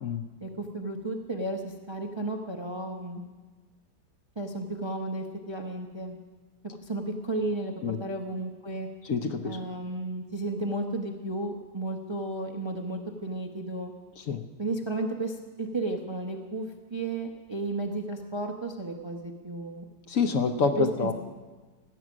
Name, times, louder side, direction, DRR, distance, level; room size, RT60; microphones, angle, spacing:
voice 1, 0.4-3.2 4.4-6.2 6.8-8.9 9.4-13.9 14.6-19.8 20.8-21.1, right 2 dB, 25° right, 2 dB, 0.6 m, -33 dB
voice 2, 9.0-9.6 14.3-14.4 20.1-21.1, left 5 dB, 60° left, 7 dB, 1.1 m, -27 dB
17.0 x 9.0 x 6.1 m, 1.3 s
omnidirectional pair, 1.7 m